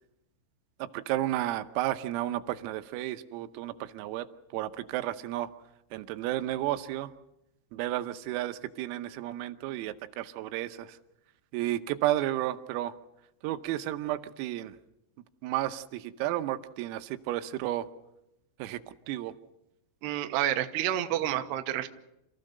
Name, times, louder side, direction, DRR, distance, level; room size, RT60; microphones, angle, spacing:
voice 1, 0.8-4.3 4.5-5.5 5.9-7.1 7.7-11.0 11.5-13.0 13.4-14.8 15.4-17.9 18.6-18.8 19.1-19.3, right 14 dB, 90° right, 10 dB, 3.6 m, -32 dB
voice 2, 20.0-21.9, right 12 dB, 75° right, 7 dB, 2.7 m, -29 dB
28.0 x 15.5 x 6.7 m, 0.87 s
omnidirectional pair, 6.0 m